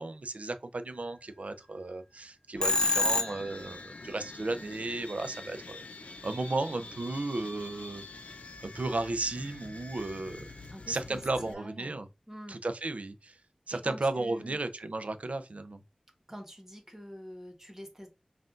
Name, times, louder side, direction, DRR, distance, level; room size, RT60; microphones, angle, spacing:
voice 1, 0.0-5.8 6.2-8.0 8.6-10.5 10.9-12.1 12.5-13.4 13.7-15.8, right 2 dB, 70° right, 0.5 m, -34 dB
sound 1, 2.6-11.5, left 2 dB, 85° left, 0.6 m, -46 dB
Telephone, 2.6-3.7, left 2 dB, 40° left, 0.4 m, -27 dB
voice 2, 10.7-12.0 12.3-12.6 13.7-14.6 16.3-18.1, equal, 20° right, 1.3 m, -46 dB
5.5 x 2.5 x 2.5 m
wide cardioid pair, 60°, 2 cm